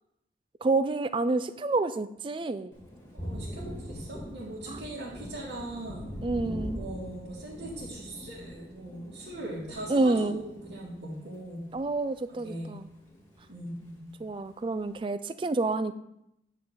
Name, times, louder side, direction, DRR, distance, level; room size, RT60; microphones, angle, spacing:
voice 1, 0.6-2.7 4.7-4.8 6.2-6.8 9.9-10.4 11.7-12.9 14.2-15.9, right 3 dB, 30° right, 13 dB, 0.3 m, -28 dB
Thunder, 2.7-12.5 12.8-13.9, equal, 15° left, 1.7 m, -42 dB
voice 2, 3.1-6.1 6.7-11.6 12.3-12.7 13.5-14.2, right 1 dB, 90° right, -8 dB, 2.0 m, -40 dB
9.3 x 3.9 x 6.6 m, 0.83 s
head